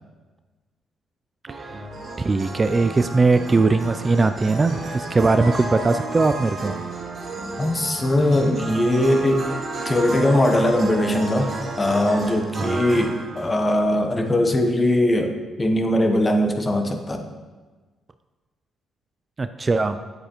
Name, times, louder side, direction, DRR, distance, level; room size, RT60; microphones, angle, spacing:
voice 1, 1.5-1.8 2.2-6.8 12.6-12.8 19.4-20.0, right 3 dB, 30° right, 10 dB, 0.3 m, -20 dB
sound 1, 1.5-13.7, right 2 dB, 50° right, 1.3 m, -32 dB
voice 2, 7.6-9.4 9.8-17.2, left 1 dB, 25° left, 5 dB, 0.9 m, -20 dB
8.9 x 8.0 x 3.0 m, 1.3 s
cardioid pair, 90°, 0 cm